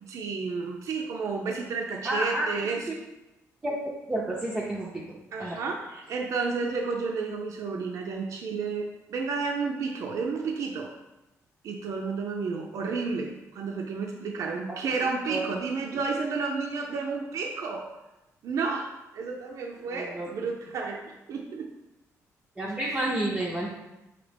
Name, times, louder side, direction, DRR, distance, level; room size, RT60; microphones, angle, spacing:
voice 1, 0.0-2.9 5.3-10.9 11.6-17.9 18.4-21.0 21.3-21.7 22.8-23.0, right 4 dB, 65° right, 1 dB, 0.5 m, -31 dB
voice 2, 2.0-2.5 2.9-3.0 3.6-3.8 4.1-5.0 5.4-5.6 14.7-14.8 15.3-15.6 15.9-16.0 19.9-20.3 22.6-23.7, right 1 dB, 15° right, -4 dB, 0.6 m, -30 dB
5.1 x 2.8 x 3.3 m, 0.96 s
cardioid pair, 125°, 6 cm